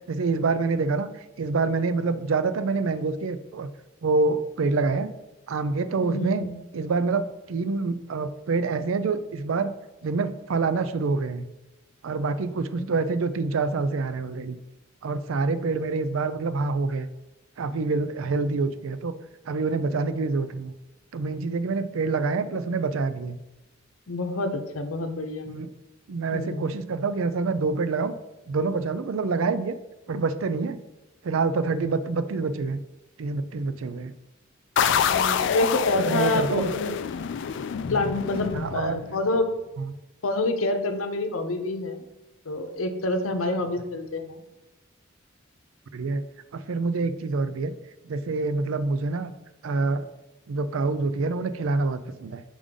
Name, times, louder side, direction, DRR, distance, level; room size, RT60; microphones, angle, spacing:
voice 1, 0.1-1.1 1.4-3.7 4.0-5.1 5.5-6.4 6.7-7.2 7.5-9.7 10.0-11.5 12.0-14.6 15.0-17.1 17.6-19.1 19.5-20.7 21.1-23.4 25.5-25.7 26.1-28.1 28.5-29.8 30.1-30.8 31.2-32.8 33.2-34.1 36.1-36.7 38.5-39.0 39.8-39.9 45.9-46.2 46.5-47.7 48.0-49.3 49.6-50.1 50.5-52.4, right 3 dB, 70° right, 12 dB, 0.4 m, -26 dB
voice 2, 6.0-6.6 12.8-12.9 24.1-25.5 26.3-26.8 35.0-37.0 37.9-39.5 40.2-42.0 42.5-44.4, left 2 dB, 80° left, 6 dB, 0.8 m, -27 dB
sound 1, 34.8-39.3, left 7 dB, 60° left, 0.3 m, -27 dB
5.0 x 3.7 x 5.2 m, 1.0 s
head